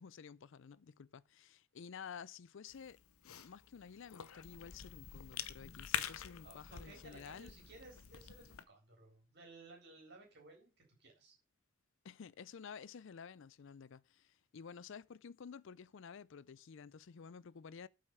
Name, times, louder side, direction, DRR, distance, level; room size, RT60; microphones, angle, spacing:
voice 1, 0.0-3.0 3.2-7.5 12.0-17.9, left 6 dB, 60° left, 0.4 m, -52 dB
Cough / Chewing mastication, 2.7-8.6, left 9 dB, 80° left, 0.8 m, -46 dB
voice 2, 6.4-11.4, right 2 dB, 50° right, 3.9 m, -58 dB
8.3 x 5.7 x 6.7 m
head